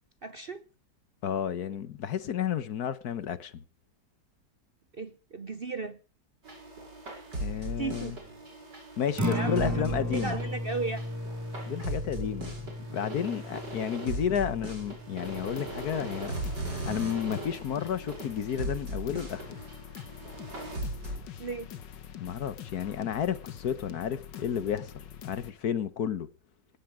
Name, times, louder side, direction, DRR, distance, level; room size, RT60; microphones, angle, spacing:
voice 1, 0.2-0.6 4.9-6.0 7.5-8.2 9.3-9.8 10.1-11.0 21.4-21.7, right 4 dB, 45° right, 0.8 m, -35 dB
voice 2, 1.2-3.6 7.4-8.2 9.0-10.4 11.6-19.5 22.2-26.3, left 8 dB, 65° left, 1.5 m, -32 dB
sound 1, 6.4-21.2, right 1 dB, 75° right, 5.6 m, -38 dB
Acoustic guitar, 9.2-17.2, equal, 15° right, 0.7 m, -36 dB
sound 2, 15.2-25.5, left 9 dB, 80° left, 1.9 m, -45 dB
17.5 x 13.5 x 5.0 m
omnidirectional pair, 1.9 m